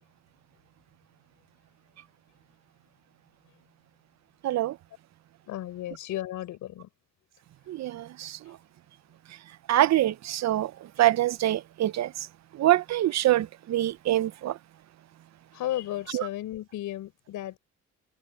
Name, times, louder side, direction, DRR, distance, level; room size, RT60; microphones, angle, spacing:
voice 1, 4.4-4.8 7.7-8.6 9.7-10.7 11.0-12.3 12.5-14.6 16.1-16.3, right 14 dB, 60° right, 0.7 m, -25 dB
voice 2, 5.5-6.9 15.5-17.6, left 13 dB, 85° left, 5.0 m, -34 dB
cardioid pair, 90°, 30 cm